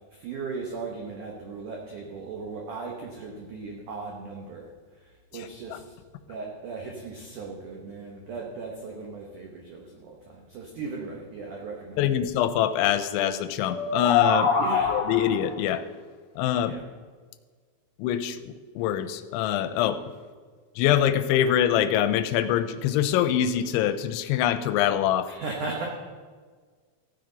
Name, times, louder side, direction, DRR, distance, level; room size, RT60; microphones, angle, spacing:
voice 1, 0.2-4.7 5.3-5.8 6.3-12.0 14.6-14.9 16.6-16.8 25.3-25.9, right 4 dB, 90° right, 0 dB, 1.7 m, -37 dB
voice 2, 5.3-5.8 12.0-14.5 14.9-15.8 16.4-16.8 18.0-18.4 18.8-20.0 20.8-25.3, left 10 dB, 85° left, 11 dB, 2.9 m, -24 dB
sound 1, 13.7-15.5, left 5 dB, 50° left, 3.1 m, -24 dB
15.5 x 9.6 x 3.9 m, 1.6 s
omnidirectional pair, 5.3 m